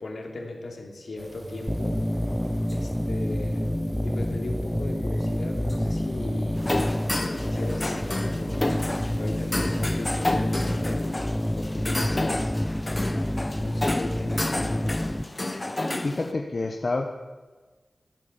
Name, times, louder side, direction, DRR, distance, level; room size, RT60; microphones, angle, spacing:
voice 1, 0.0-2.0 2.7-3.6 4.0-6.6 7.1-8.7 9.2-12.5 13.6-15.0, left 2 dB, 75° left, 1 dB, 2.9 m, -37 dB
sound 1, 1.2-10.9, right 1 dB, 35° right, 1.0 m, -42 dB
sound 2, 1.7-15.2, equal, 10° left, 0.5 m, -28 dB
sound 3, 6.6-16.3, left 2 dB, 25° left, 1.0 m, -30 dB
voice 2, 16.0-17.1, left 3 dB, 50° left, 3 dB, 1.1 m, -28 dB
15.5 x 9.4 x 7.1 m, 1.3 s
wide cardioid pair, 80°, 0 cm